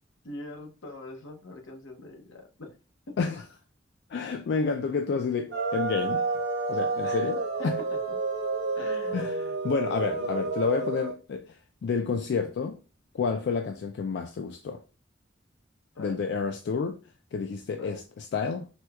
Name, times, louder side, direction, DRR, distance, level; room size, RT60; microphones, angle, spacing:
voice 1, 0.2-2.7 3.1-3.3 7.0-7.3 7.9-8.0 8.8-9.6 10.1-10.5 15.9-16.2 17.8-18.0, left 2 dB, 85° left, 0.8 m, -43 dB
voice 2, 4.1-6.2 6.7-7.8 9.1-12.8 13.1-14.8 16.0-18.7, left 5 dB, 60° left, 0.3 m, -30 dB
sound 1, 5.5-11.1, right 3 dB, 60° right, 0.7 m, -30 dB
4.4 x 2.2 x 2.3 m
head